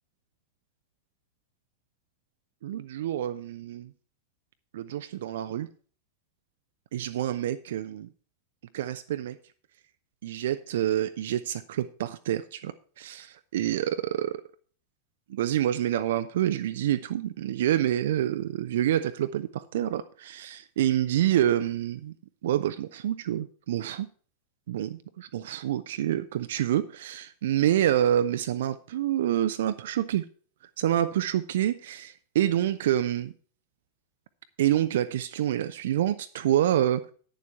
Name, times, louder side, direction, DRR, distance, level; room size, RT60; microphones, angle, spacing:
voice 1, 2.6-3.9 4.7-5.7 6.9-8.1 8.7-9.4 10.2-14.3 15.3-22.1 22.4-24.1 24.7-30.2 30.8-33.3 34.6-37.1, right 11 dB, 60° right, 0.4 m, -27 dB
9.4 x 7.0 x 5.4 m
figure-of-eight pair, 90°, 0 cm